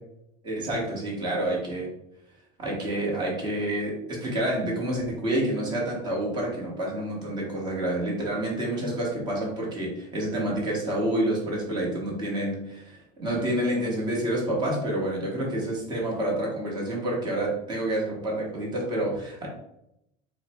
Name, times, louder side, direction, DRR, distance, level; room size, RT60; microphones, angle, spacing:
voice 1, 0.4-1.9 2.6-19.5, right 1 dB, 25° right, -3 dB, 1.1 m, -28 dB
4.1 x 2.1 x 4.2 m, 0.82 s
cardioid pair, 175°, 19 cm